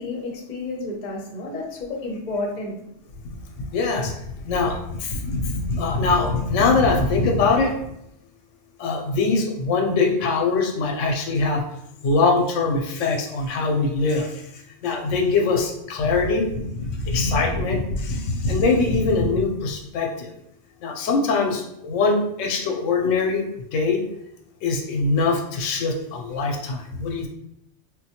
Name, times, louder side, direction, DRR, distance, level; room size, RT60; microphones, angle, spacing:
voice 1, 0.0-2.8, left 2 dB, 45° left, 0 dB, 0.7 m, -31 dB
voice 2, 3.7-4.1 4.4-7.7 8.8-11.6 12.0-14.3 14.8-20.3 20.8-23.4 23.7-24.0 24.6-27.3, left 3 dB, 85° left, 2 dB, 0.9 m, -22 dB
3.8 x 2.2 x 2.8 m, 0.78 s
omnidirectional pair, 1.3 m